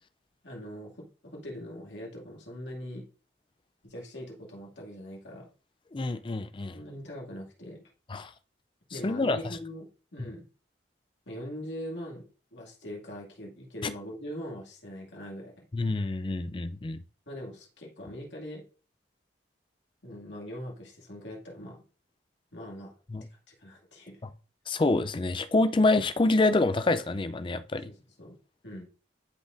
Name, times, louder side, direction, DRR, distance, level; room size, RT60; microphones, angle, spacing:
voice 1, 0.4-3.1 3.8-5.5 6.7-7.8 8.9-10.4 11.3-15.6 17.3-18.6 20.0-21.8 22.5-22.9 23.5-24.2 27.7-28.4 28.6-28.8, equal, 80° left, 2.3 m, -42 dB
voice 2, 5.9-6.8 8.1-8.3 9.0-9.4 10.2-10.3 13.8-13.9 15.7-17.0 23.1-23.3 24.7-27.9, left 2 dB, 30° left, 0.4 m, -26 dB
11.5 x 4.0 x 2.6 m
head